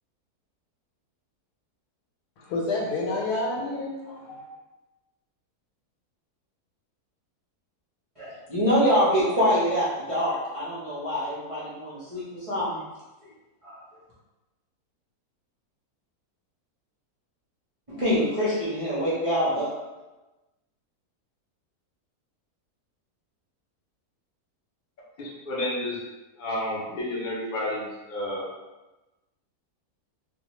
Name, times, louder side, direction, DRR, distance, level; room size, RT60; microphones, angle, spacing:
voice 1, 2.4-4.5, left 2 dB, 90° left, -2 dB, 1.2 m, -29 dB
voice 2, 8.2-12.8 13.6-13.8 17.9-19.7, equal, 50° right, -11 dB, 0.4 m, -25 dB
voice 3, 25.2-26.0 26.4-28.5, left 1 dB, 55° left, -5 dB, 0.5 m, -31 dB
2.6 x 2.1 x 3.0 m, 1.1 s
omnidirectional pair, 1.6 m